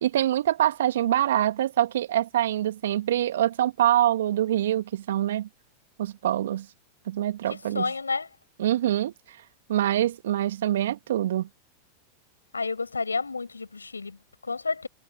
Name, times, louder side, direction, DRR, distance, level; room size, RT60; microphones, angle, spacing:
voice 1, 0.0-5.5 6.0-6.7 7.1-7.9 8.6-9.4 9.7-11.5, right 12 dB, 65° right, 2.0 m, -25 dB
voice 2, 7.5-8.3 12.5-14.9, left 4 dB, 85° left, 4.8 m, -31 dB
figure-of-eight pair, 90°, 0 cm